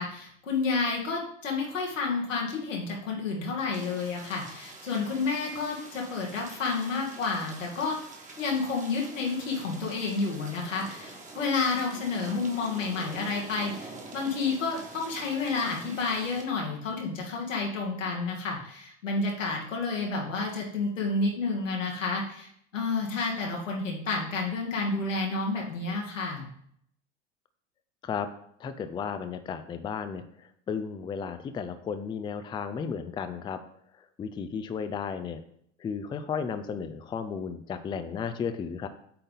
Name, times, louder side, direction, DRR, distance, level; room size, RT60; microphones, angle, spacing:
voice 1, 0.0-8.0 8.4-26.5, left 4 dB, 85° left, -1 dB, 1.9 m, -30 dB
sound 1, 3.7-16.4, right 3 dB, 20° right, 1.5 m, -46 dB
voice 2, 28.6-33.6 34.2-35.4 35.8-38.9, left 6 dB, 15° left, 10 dB, 0.4 m, -34 dB
8.3 x 3.8 x 3.9 m, 0.69 s
hypercardioid pair, 85°, 37 cm